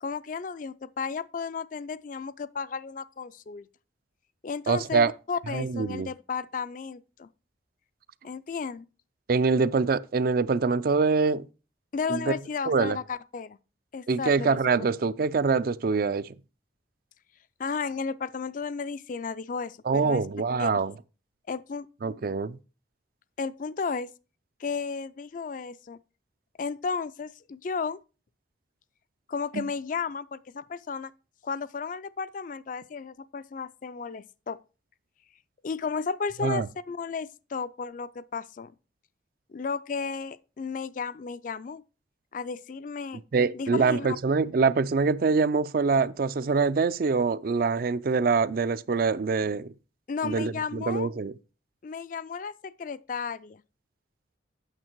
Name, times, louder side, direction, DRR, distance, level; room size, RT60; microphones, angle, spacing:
voice 1, 0.0-3.7 4.4-7.3 8.2-8.9 11.9-13.6 13.9-14.6 17.6-20.2 20.6-20.7 21.5-21.9 23.4-24.1 24.6-26.0 26.6-28.0 29.3-31.1 31.4-34.6 35.6-38.7 39.5-41.8 42.3-43.2 43.5-44.1 50.1-51.1 51.8-53.6, left 5 dB, 45° left, 0.4 m, -33 dB
voice 2, 4.7-5.1 5.5-6.1 9.3-11.4 12.1-12.3 12.7-13.0 14.1-16.3 19.9-20.9 22.0-22.6 29.5-29.7 36.4-36.7 43.3-49.7 50.2-51.3, right 4 dB, 50° right, 0.4 m, -24 dB
8.8 x 6.6 x 4.5 m
head